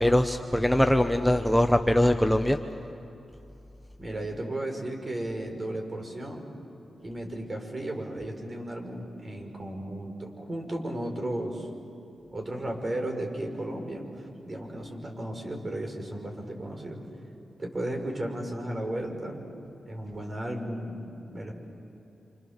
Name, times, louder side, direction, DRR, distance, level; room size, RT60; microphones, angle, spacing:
voice 1, 0.0-2.6, left 1 dB, 5° left, 6 dB, 1.0 m, -22 dB
voice 2, 4.0-6.4 7.0-11.7 12.3-17.0 17.6-19.4 19.9-21.5, right 1 dB, 40° right, 2 dB, 5.3 m, -34 dB
28.0 x 27.0 x 7.4 m, 2.8 s
cardioid pair, 65°, 0 cm